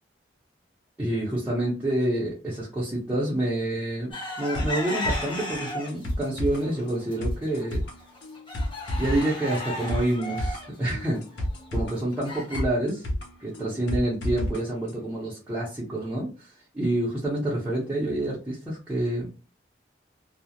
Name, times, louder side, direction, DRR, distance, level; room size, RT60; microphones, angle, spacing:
voice 1, 1.0-7.8 9.0-11.2 11.7-13.0 13.4-19.3, right 1 dB, 10° right, -7 dB, 0.7 m, -28 dB
sound 1, 4.1-6.1 6.6-7.2 7.6-7.7 8.0-12.6, left 1 dB, 30° left, 1.3 m, -34 dB
sound 2, 4.5-14.6 14.9-15.0, left 1 dB, 75° left, 0.7 m, -32 dB
2.3 x 2.0 x 2.7 m, 0.34 s
head